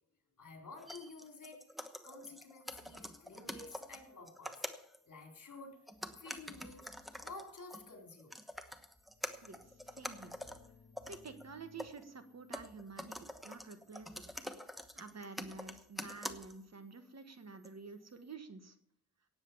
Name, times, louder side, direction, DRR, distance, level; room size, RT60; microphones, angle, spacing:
voice 1, 0.4-1.6 2.0-4.6 5.1-5.9 6.2-6.9 7.2-8.4, left 3 dB, 60° left, 3 dB, 3.7 m, -51 dB
sound 1, 0.8-5.0 5.9-12.1 12.5-16.8 17.6-17.7, equal, ahead, 1.1 m, -46 dB
sound 2, 8.9-14.5, left 5 dB, 75° left, 1.7 m, -65 dB
voice 2, 9.4-10.4 11.0-14.2 14.9-18.7, right 4 dB, 50° right, 8 dB, 1.5 m, -50 dB
17.5 x 8.0 x 6.9 m, 0.68 s
wide cardioid pair, 125°, 35 cm